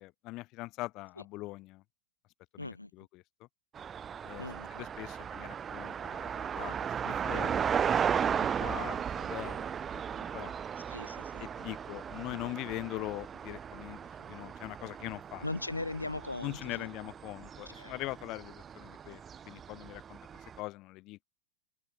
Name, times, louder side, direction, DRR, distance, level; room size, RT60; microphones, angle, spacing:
voice 1, 0.0-1.8 2.5-3.5 4.2-4.4 4.7-10.5 11.4-15.4 16.4-21.2, left 20 dB, 40° left, 0.5 m, -42 dB
voice 2, 2.6-2.9 4.4-4.9 10.9-11.4 15.4-16.9 17.8-17.9, left 2 dB, 85° left, 0.7 m, -39 dB
sound 1, 3.7-20.6, right 8 dB, 20° right, 1.2 m, -36 dB
sound 2, 5.9-19.0, left 5 dB, 15° left, 7.0 m, -71 dB
figure-of-eight pair, 90°, 0 cm